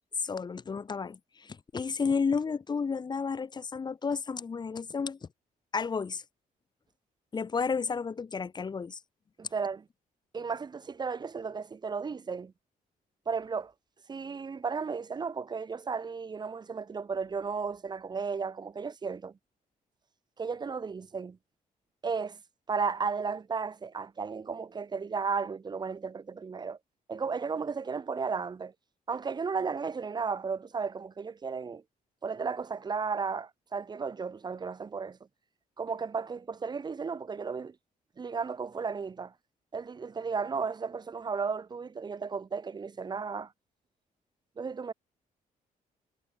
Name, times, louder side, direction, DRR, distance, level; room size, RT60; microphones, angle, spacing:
voice 1, 0.2-5.2 5.7-6.2 7.3-9.0, left 5 dB, 30° left, 5.2 m, -32 dB
voice 2, 9.4-9.8 10.3-12.5 13.2-13.7 14.1-19.3 20.4-21.4 22.0-22.4 22.7-26.8 27.1-28.7 29.1-31.8 32.2-35.2 35.8-37.7 38.2-39.3 39.7-43.5 44.6-44.9, right 5 dB, 30° right, 5.0 m, -34 dB
cardioid pair, 160°, 15 cm